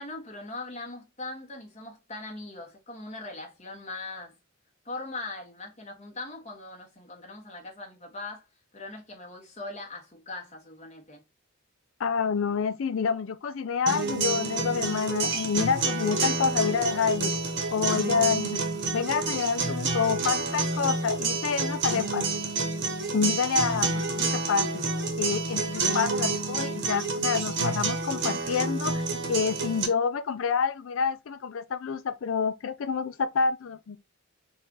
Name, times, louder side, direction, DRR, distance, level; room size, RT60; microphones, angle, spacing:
voice 1, 0.0-4.4 4.8-8.4 8.7-11.2, left 2 dB, 30° left, 1.2 m, -40 dB
voice 2, 12.0-17.3 17.7-18.6 18.9-22.3 23.1-24.9 25.2-34.0, left 6 dB, 60° left, 0.4 m, -28 dB
sound 1, 13.9-29.9, right 3 dB, 50° right, 1.0 m, -29 dB
4.2 x 2.4 x 3.7 m
head